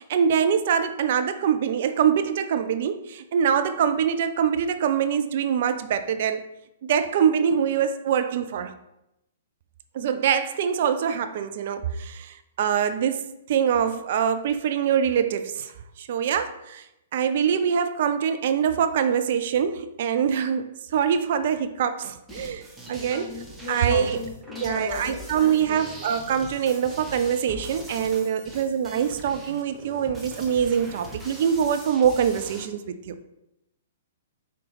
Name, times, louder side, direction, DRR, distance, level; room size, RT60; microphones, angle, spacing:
voice 1, 0.0-6.4 6.8-8.7 9.9-15.7 16.0-16.8 17.1-22.6 22.9-24.2 24.6-33.2, right 8 dB, 45° right, 0.3 m, -24 dB
sound 1, 22.3-32.7, right 1 dB, 5° right, 0.7 m, -42 dB
voice 2, 23.1-25.8, left 4 dB, 50° left, 0.7 m, -36 dB
5.1 x 2.8 x 3.3 m
figure-of-eight pair, 115°, 0 cm